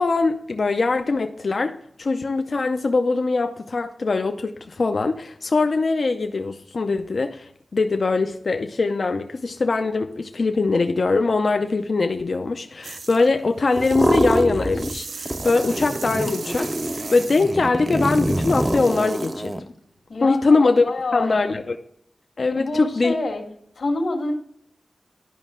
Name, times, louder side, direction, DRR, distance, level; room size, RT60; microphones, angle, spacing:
voice 1, 0.0-1.7 2.0-19.7 20.2-20.9 21.1-21.8 22.4-23.1, left 3 dB, 55° left, 6 dB, 0.5 m, -22 dB
sound 1, 12.8-13.3 13.7-19.5, right 4 dB, 80° right, 0.4 m, -38 dB
sound 2, 13.8-15.0 15.3-19.6, right 1 dB, 15° right, 0.5 m, -25 dB
voice 2, 20.1-21.6 22.5-23.4 23.8-24.3, left 2 dB, 75° left, 2 dB, 1.7 m, -27 dB
11.0 x 5.3 x 3.7 m, 0.69 s
wide cardioid pair, 115°, 0 cm